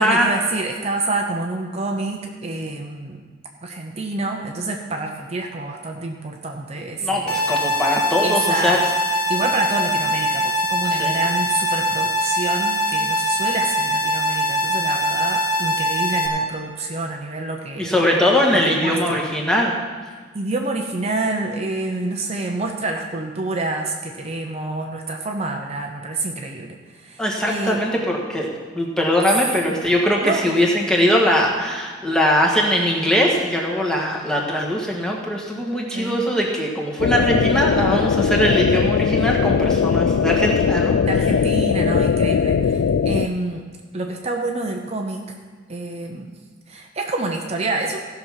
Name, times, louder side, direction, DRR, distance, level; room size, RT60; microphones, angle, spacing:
voice 1, 0.0-3.2 3.6-7.4 8.2-8.9 9.3-18.0 18.5-19.2 20.3-27.8 30.2-30.6 35.9-36.2 41.1-43.7 43.9-45.4 45.7-46.3 46.7-48.0, right 2 dB, 30° right, 2 dB, 0.8 m, -27 dB
voice 2, 7.0-8.8 11.0-11.1 17.8-19.7 27.2-28.5 28.7-41.0, equal, 5° left, -2 dB, 1.6 m, -21 dB
sound 1, 7.3-16.3, equal, 30° left, 1.9 m, -22 dB
sound 2, 37.0-43.3, left 6 dB, 65° left, 0.3 m, -19 dB
15.5 x 6.1 x 5.8 m, 1.5 s
head